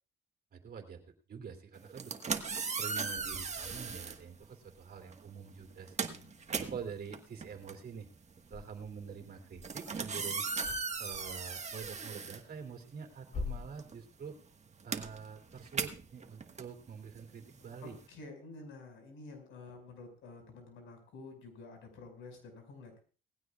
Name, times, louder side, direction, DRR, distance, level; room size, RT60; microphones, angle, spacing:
voice 1, 0.5-1.0 1.3-2.3 2.8-6.1 6.5-8.1 8.5-10.4 11.0-14.4 14.8-18.0, right 6 dB, 50° right, 4 dB, 3.0 m, -46 dB
sound 1, 1.8-4.2 5.1-5.3 5.6-13.1 13.4-18.1, right 5 dB, 35° right, 1.6 m, -38 dB
sound 2, 2.3-18.1, left 4 dB, 40° left, 6.4 m, -51 dB
voice 2, 6.0-6.7 17.8-23.0, left 3 dB, 85° left, 4 dB, 5.6 m, -50 dB
19.5 x 15.5 x 2.4 m, 0.37 s
cardioid pair, 90°, 20 cm